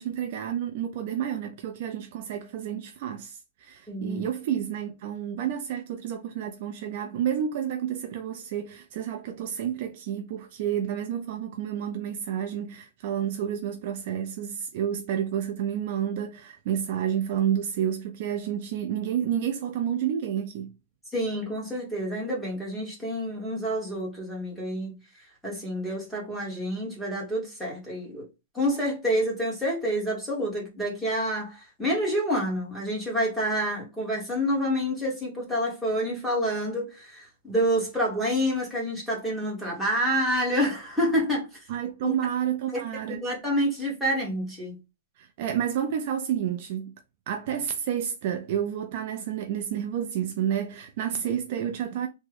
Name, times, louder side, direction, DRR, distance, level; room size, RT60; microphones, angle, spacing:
voice 1, 0.0-20.7 41.7-43.2 45.2-46.9 47.3-52.1, right 9 dB, 40° right, 0.4 m, -30 dB
voice 2, 3.9-4.3 21.1-25.0 25.4-28.2 28.5-41.6 42.0-42.1 42.7-42.8 43.1-44.8, equal, ahead, 1.0 m, -28 dB
3.4 x 2.1 x 3.3 m
supercardioid pair, 175°, 0 cm